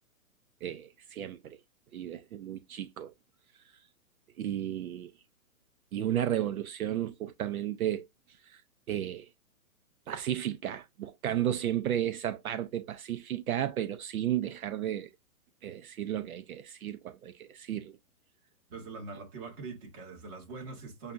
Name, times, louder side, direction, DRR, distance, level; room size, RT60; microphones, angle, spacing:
voice 1, 0.6-1.6 1.9-3.1 4.4-5.1 5.9-8.1 8.4-8.6 8.9-9.3 10.1-15.1 15.6-18.0, right 11 dB, 70° right, 0.7 m, -33 dB
voice 2, 18.7-21.1, right 4 dB, 20° right, 1.3 m, -43 dB
6.7 x 2.4 x 2.5 m
hypercardioid pair, 155°, 44 cm